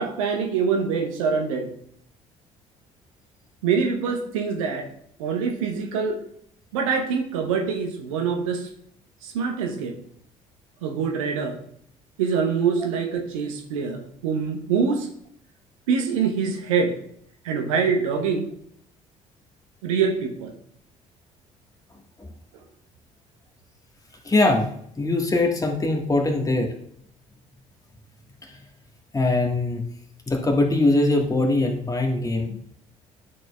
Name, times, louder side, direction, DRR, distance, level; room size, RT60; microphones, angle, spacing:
voice 1, 0.0-1.7 3.6-4.9 5.2-6.2 6.7-8.7 9.2-10.0 10.8-11.6 12.2-15.1 15.9-17.0 17.4-18.5 19.8-20.5 22.5-22.6, right 6 dB, 70° right, 3 dB, 1.0 m, -25 dB
voice 2, 24.2-24.7 25.0-26.7 29.1-29.8 30.3-32.6, left 2 dB, 20° left, 2 dB, 1.5 m, -21 dB
10.5 x 6.3 x 2.3 m, 0.69 s
figure-of-eight pair, 50°, 18 cm